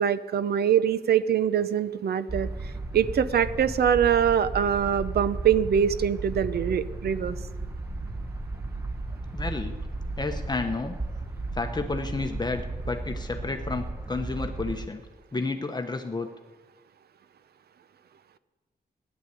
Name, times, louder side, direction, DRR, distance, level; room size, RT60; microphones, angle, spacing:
voice 1, 0.0-2.5 2.9-7.4, right 8 dB, 90° right, 14 dB, 0.7 m, -23 dB
sound 1, 2.3-14.9, right 2 dB, 15° right, 1.1 m, -34 dB
voice 2, 9.3-9.7 10.2-11.0 11.5-15.0 15.3-16.3, left 3 dB, 25° left, 5 dB, 1.0 m, -31 dB
15.5 x 11.0 x 8.4 m, 1.3 s
cardioid pair, 90°, 16 cm